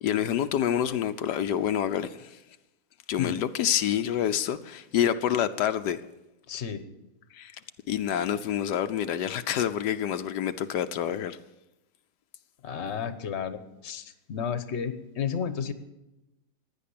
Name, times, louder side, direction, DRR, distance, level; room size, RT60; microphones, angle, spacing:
voice 1, 0.0-2.4 3.1-6.0 7.3-7.5 7.9-11.4, left 10 dB, 85° left, 1.3 m, -27 dB
voice 2, 6.5-6.8 12.6-15.7, left 7 dB, 45° left, 1.3 m, -32 dB
16.0 x 10.5 x 8.5 m
omnidirectional pair, 1.8 m